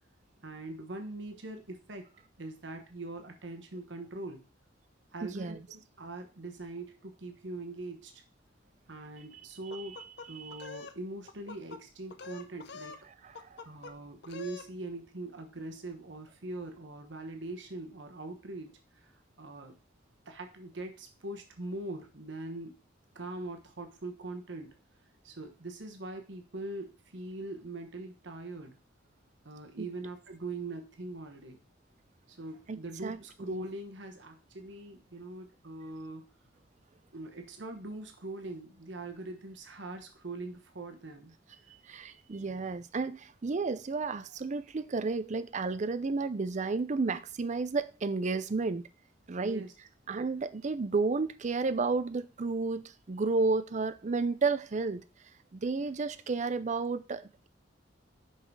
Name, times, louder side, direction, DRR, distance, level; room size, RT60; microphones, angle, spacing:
voice 1, 0.4-2.1 2.4-4.4 5.1-8.2 8.9-10.0 10.3-13.0 13.6-19.8 20.3-22.8 23.1-24.7 25.2-28.8 29.4-31.6 32.3-36.3 37.1-41.3 49.4-49.7, right 2 dB, 65° right, 1.1 m, -42 dB
voice 2, 5.2-5.6 9.7-9.9 10.4-10.6 13.4-13.6 29.8-29.9 32.7-33.2 33.5-33.6 41.9-48.8 49.3-49.7 50.1-55.0 55.5-57.5, right 4 dB, 40° right, 0.5 m, -32 dB
sound 1, 9.7-11.0 11.3-11.8 12.1-13.0 13.4-13.9 14.2-14.7, left 4 dB, 60° left, 0.6 m, -45 dB
5.7 x 5.6 x 4.7 m
head